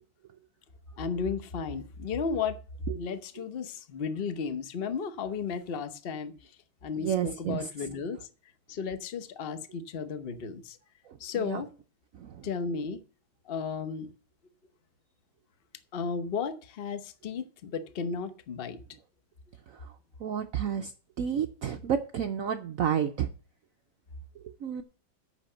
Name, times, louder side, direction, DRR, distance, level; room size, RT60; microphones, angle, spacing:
voice 1, 1.0-2.6 2.9-6.3 6.8-8.2 8.7-10.8 11.2-11.7 12.4-13.0 13.5-14.1 15.9-18.8, left 5 dB, 45° left, 0.7 m, -34 dB
voice 2, 7.0-7.7 11.4-11.6 12.2-12.3 20.2-20.9 21.2-23.3 24.6-24.8, right 8 dB, 75° right, 0.7 m, -30 dB
8.2 x 6.0 x 7.7 m
omnidirectional pair, 2.2 m